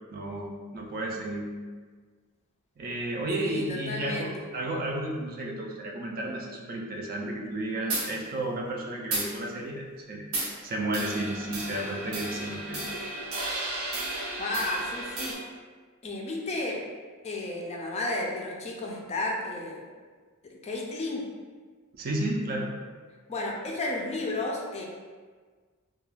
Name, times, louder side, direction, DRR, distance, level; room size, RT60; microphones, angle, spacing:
voice 1, 0.1-1.5 2.8-10.3 10.6-12.8 21.9-22.7, right 1 dB, 45° right, -1 dB, 0.4 m, -32 dB
voice 2, 3.4-4.3 14.4-15.5 16.0-16.8 17.2-19.8 20.4-21.2 23.3-24.8, left 2 dB, 30° left, -2 dB, 0.4 m, -32 dB
sound 1, 7.9-8.1 9.1-9.3 10.3-10.5 10.9-15.3, right 2 dB, 75° right, 0.7 m, -33 dB
2.3 x 2.2 x 3.2 m, 1.5 s
head